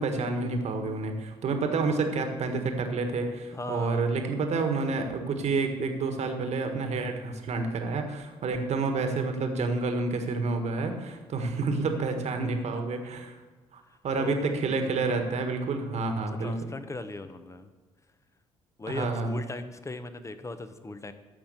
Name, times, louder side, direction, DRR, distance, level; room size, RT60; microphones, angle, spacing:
voice 1, 0.0-13.3 13.7-16.5 18.9-19.3, right 3 dB, 50° right, 5 dB, 1.6 m, -29 dB
voice 2, 3.5-4.2 11.9-12.0 12.6-12.7 13.9-14.9 16.4-17.7 18.8-21.1, left 2 dB, 20° left, 10 dB, 1.1 m, -38 dB
14.0 x 5.8 x 6.9 m, 1.4 s
hypercardioid pair, 50°, 14 cm